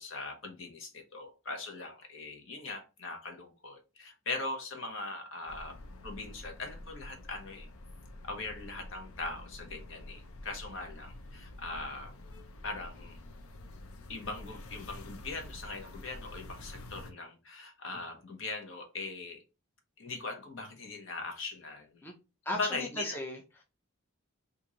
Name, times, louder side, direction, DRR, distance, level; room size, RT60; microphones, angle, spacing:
voice 1, 0.0-5.8 6.0-7.7 8.2-12.1 12.6-13.2 14.1-19.4 20.0-22.0 22.5-23.2, left 3 dB, 60° left, 0.9 m, -40 dB
sound 1, 5.5-17.1, left 1 dB, 80° left, 0.6 m, -48 dB
voice 2, 22.4-23.6, left 1 dB, 10° left, 0.5 m, -37 dB
3.0 x 2.6 x 3.7 m
head